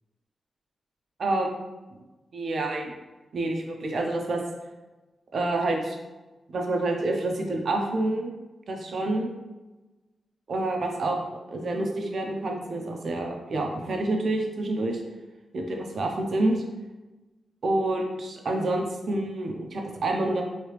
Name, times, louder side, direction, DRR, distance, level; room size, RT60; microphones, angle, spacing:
voice 1, 1.2-1.6 2.3-3.0 3.3-4.4 5.3-6.0 6.5-8.3 8.7-9.3 10.5-15.0 15.5-16.6 17.6-20.4, right 2 dB, 60° right, 2 dB, 0.6 m, -28 dB
3.0 x 2.8 x 3.2 m, 1.1 s
wide cardioid pair, 110°, 0 cm